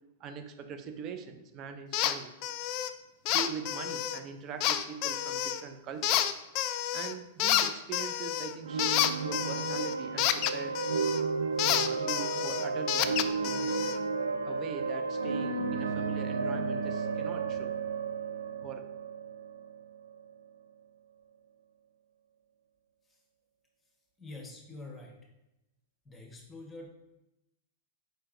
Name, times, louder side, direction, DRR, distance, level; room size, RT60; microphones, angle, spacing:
voice 1, 0.2-2.3 3.3-6.3 6.9-10.8 11.6-13.8 14.4-17.8 18.6-18.8, right 6 dB, 40° right, 8 dB, 0.6 m, -42 dB
sound 1, 1.9-2.1 2.4-2.9 3.3-4.2 4.6-5.6 6.0-7.1 7.4-11.2 11.6-14.0, left 12 dB, 50° left, 0.3 m, -29 dB
sound 2, 8.6-20.3, right 4 dB, 90° right, 0.4 m, -33 dB
voice 2, 24.2-25.2 26.0-26.9, left 2 dB, 15° left, 1 dB, 1.1 m, -45 dB
4.5 x 4.4 x 2.5 m, 0.91 s
hypercardioid pair, 110°, 0 cm